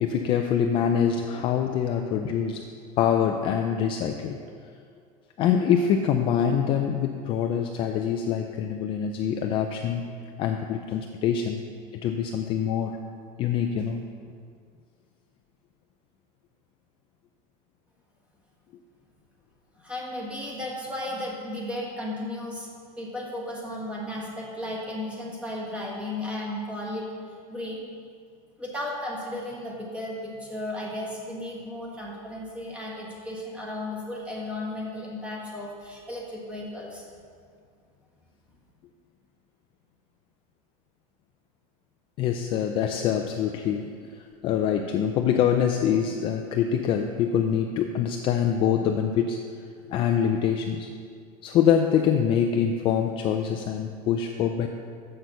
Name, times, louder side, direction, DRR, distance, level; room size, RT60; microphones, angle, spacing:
voice 1, 0.0-2.6 3.0-4.4 5.4-10.0 10.4-11.6 12.0-13.0 13.4-14.1 42.2-44.1 44.4-49.4 49.9-50.9 51.4-54.7, left 8 dB, 30° left, 4 dB, 0.4 m, -25 dB
voice 2, 19.8-22.7 23.0-27.0 27.5-27.8 28.6-37.1, left 1 dB, 5° right, -3 dB, 1.5 m, -34 dB
7.6 x 6.2 x 6.7 m, 2.2 s
supercardioid pair, 170°, 18 cm